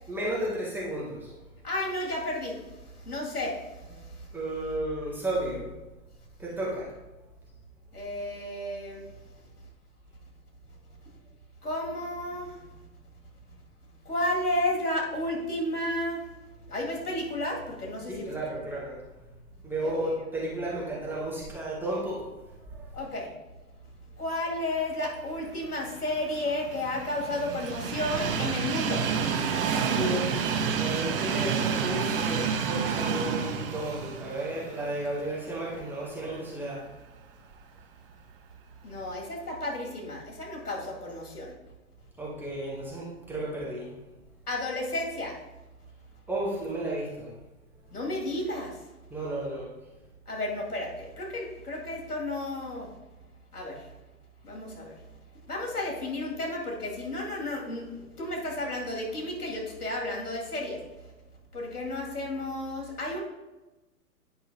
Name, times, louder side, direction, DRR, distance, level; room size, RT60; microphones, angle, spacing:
voice 1, 0.1-1.3 4.3-5.7 6.4-6.9 18.1-19.0 19.6-22.3 22.7-22.9 30.0-36.8 42.2-43.9 46.3-47.3 49.1-49.7, right 1 dB, 5° right, -5 dB, 0.8 m, -33 dB
voice 2, 1.6-2.6 2.9-4.3 7.9-9.1 11.6-12.6 14.1-16.3 16.7-18.5 19.8-20.2 22.9-23.3 24.2-29.0 38.8-41.5 44.5-45.4 47.9-48.8 50.3-52.9 53.5-53.9 54.4-55.0 55.5-60.8 61.5-63.2, left 1 dB, 80° left, -2 dB, 2.4 m, -32 dB
Train, 25.8-35.9 36.3-36.4 37.5-37.6, right 6 dB, 40° right, 0.7 m, -29 dB
9.7 x 5.6 x 2.8 m, 1.1 s
hypercardioid pair, 130°, 45 cm